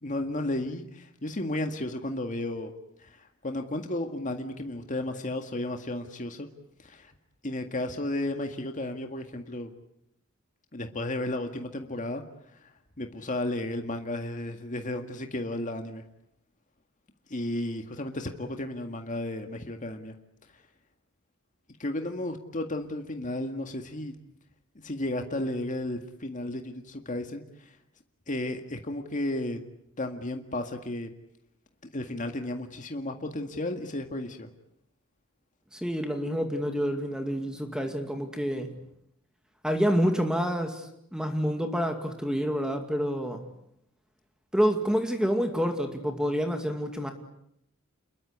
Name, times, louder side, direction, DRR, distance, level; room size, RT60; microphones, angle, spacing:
voice 1, 0.0-2.7 3.0-6.5 6.8-7.1 7.4-9.7 10.7-12.2 13.0-16.0 17.3-20.1 21.8-24.2 24.8-27.8 28.3-29.6 30.0-31.1 31.9-34.5, left 1 dB, 40° left, 5 dB, 2.0 m, -33 dB
voice 2, 35.7-38.8 39.6-43.5 44.5-47.1, equal, 5° right, 5 dB, 2.3 m, -28 dB
29.0 x 22.0 x 8.2 m, 0.77 s
head